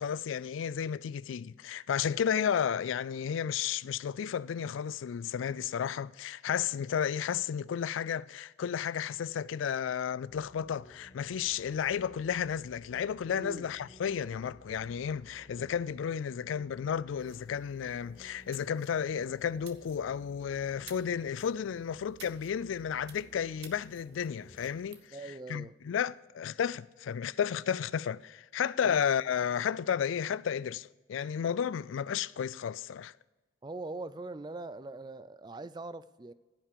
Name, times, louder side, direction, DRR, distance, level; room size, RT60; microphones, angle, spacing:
voice 1, 0.0-33.1, left 8 dB, 85° left, 0.3 m, -33 dB
sound 1, 10.3-24.7, left 1 dB, 30° left, 2.0 m, -56 dB
voice 2, 13.3-13.7 25.1-25.7 28.8-29.0 33.6-36.3, right 2 dB, 20° right, 0.3 m, -42 dB
sound 2, 17.2-25.0, right 8 dB, 55° right, 1.1 m, -57 dB
15.0 x 5.8 x 6.8 m
head